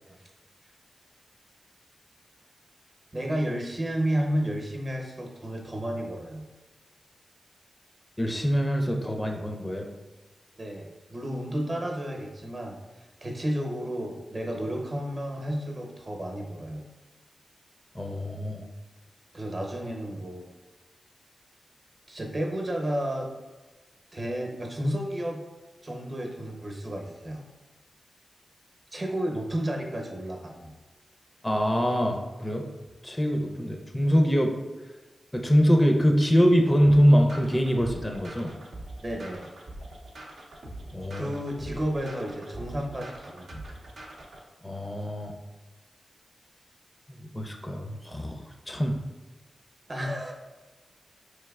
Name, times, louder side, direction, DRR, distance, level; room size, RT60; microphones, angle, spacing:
voice 1, 3.1-6.5 10.6-12.8 13.2-16.8 19.3-20.5 22.1-23.3 24.1-25.4 25.8-27.4 28.9-30.7 33.6-33.8 39.0-39.5 41.1-43.6 49.9-50.3, right 1 dB, 40° right, 1 dB, 0.8 m, -32 dB
voice 2, 8.2-9.9 17.9-18.7 31.4-32.7 33.0-34.5 35.3-38.5 40.9-41.3 44.6-45.3 47.3-48.4 48.7-49.0, equal, 15° left, 2 dB, 0.4 m, -23 dB
sound 1, 36.8-44.4, right 1 dB, 75° right, 0.6 m, -43 dB
4.5 x 3.2 x 2.3 m, 1.2 s
cardioid pair, 65°, 0 cm